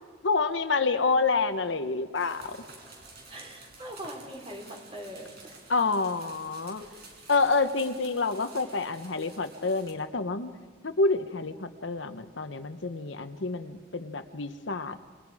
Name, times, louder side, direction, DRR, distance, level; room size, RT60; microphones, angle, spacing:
voice 1, 0.2-2.6 5.7-6.8 7.3-10.5 10.8-15.0, left 3 dB, 65° left, 9 dB, 1.0 m, -28 dB
sound 1, 2.1-9.9, right 3 dB, 55° right, 5.1 m, -51 dB
voice 2, 3.3-5.6 6.8-6.9, equal, 30° right, 1 dB, 3.8 m, -42 dB
27.5 x 22.5 x 4.9 m, 1.5 s
head